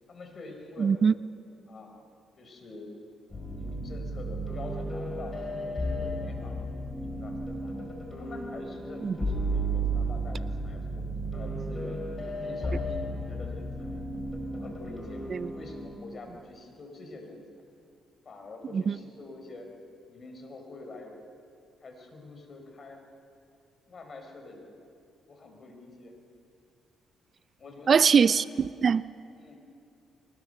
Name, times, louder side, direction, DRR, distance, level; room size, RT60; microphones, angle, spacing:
voice 1, 0.1-1.0 1.7-1.9 2.4-3.0 3.6-5.3 5.6-6.6 7.0-7.8 8.1-11.0 11.3-12.1 12.4-14.1 14.5-15.2 15.5-17.5 18.2-19.7 20.1-21.1 21.8-23.0 23.9-24.7 25.3-26.2 27.6-28.1 29.4-29.6, left 3 dB, 45° left, 4 dB, 4.4 m, -45 dB
voice 2, 0.8-1.1 9.0-9.2 15.3-15.5 27.9-29.0, right 6 dB, 45° right, 17 dB, 0.4 m, -22 dB
sound 1, 3.3-16.0, right 1 dB, 25° left, 4.8 m, -33 dB
22.5 x 20.5 x 6.6 m, 2.5 s
cardioid pair, 90°, 0 cm